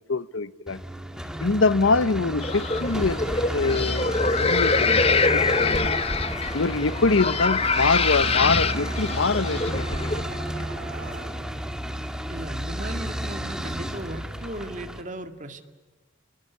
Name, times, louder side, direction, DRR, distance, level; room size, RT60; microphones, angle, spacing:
voice 1, 0.1-0.8 1.4-3.3 3.5-6.0 6.5-10.3, left 3 dB, 80° left, 0.9 m, -24 dB
sound 1, 0.7-15.0, equal, 5° right, 2.1 m, -32 dB
sound 2, 2.4-10.2, left 4 dB, 30° left, 1.0 m, -24 dB
sound 3, 3.6-11.7, right 2 dB, 65° right, 2.2 m, -45 dB
voice 2, 12.3-15.6, right 1 dB, 40° right, 2.1 m, -36 dB
29.0 x 21.0 x 9.8 m
head